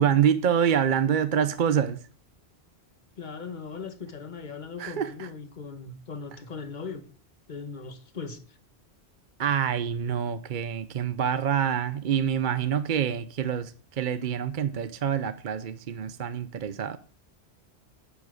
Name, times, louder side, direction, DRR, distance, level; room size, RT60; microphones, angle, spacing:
voice 1, 0.0-2.0 4.8-5.3 9.4-17.0, right 8 dB, 55° right, 0.7 m, -26 dB
voice 2, 3.2-7.1 7.5-8.4, left 5 dB, 45° left, 1.4 m, -39 dB
10.0 x 7.4 x 6.3 m
omnidirectional pair, 1.1 m